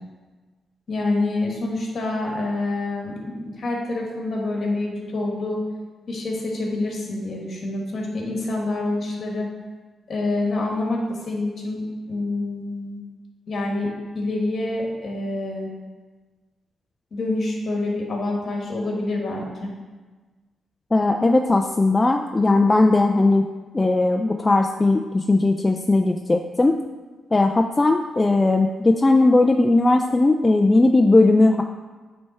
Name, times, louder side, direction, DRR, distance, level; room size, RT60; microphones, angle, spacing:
voice 1, 0.9-5.6 6.1-9.5 10.1-13.0 13.5-13.9 14.1-15.7 17.1-19.7, left 2 dB, 50° left, 0 dB, 1.5 m, -27 dB
voice 2, 20.9-23.5 23.7-26.8 27.3-31.6, left 2 dB, 20° left, 3 dB, 0.3 m, -18 dB
8.5 x 3.4 x 4.3 m, 1.3 s
cardioid pair, 110°, 0 cm